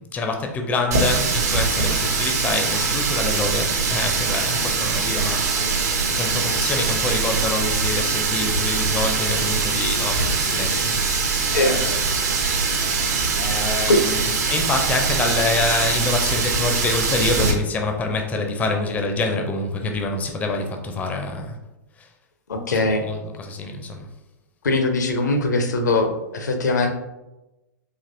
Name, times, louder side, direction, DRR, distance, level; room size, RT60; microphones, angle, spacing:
voice 1, 0.0-11.0 11.5-12.0 13.4-21.6 22.0-22.1 22.7-24.1, left 3 dB, 15° left, 4 dB, 0.4 m, -26 dB
Water tap faucet, 0.9-17.5, right 4 dB, 60° right, 0.7 m, -22 dB
voice 2, 13.9-14.3 22.5-23.0 24.6-26.9, left 2 dB, 75° left, 5 dB, 0.6 m, -21 dB
4.2 x 2.9 x 2.5 m, 0.99 s
figure-of-eight pair, 105°, 10 cm